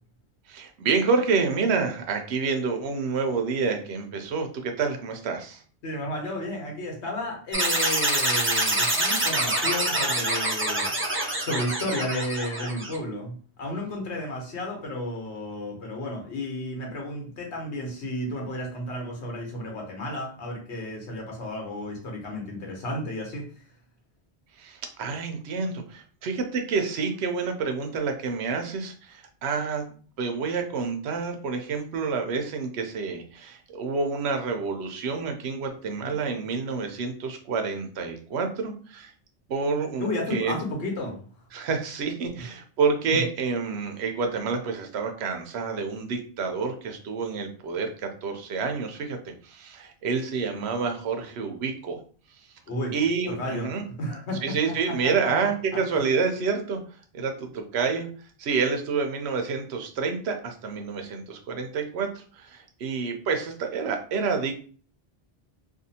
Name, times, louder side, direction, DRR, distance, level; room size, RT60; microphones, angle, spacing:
voice 1, 0.5-5.6 24.6-29.8 30.2-39.1 39.5-40.5 41.5-52.0 52.9-53.8 54.4-56.8 57.1-58.1 58.4-64.5, right 5 dB, 80° right, 5 dB, 0.8 m, -28 dB
voice 2, 5.8-10.9 11.4-23.5 40.0-41.2 42.4-42.5 43.1-43.2 52.7-52.9 53.3-53.7 54.0-54.6 54.9-55.8, left 1 dB, 85° left, 0 dB, 1.2 m, -32 dB
sound 1, 7.5-13.0, right 1 dB, 20° right, 0.3 m, -25 dB
2.6 x 2.4 x 2.7 m, 0.42 s
omnidirectional pair, 1.1 m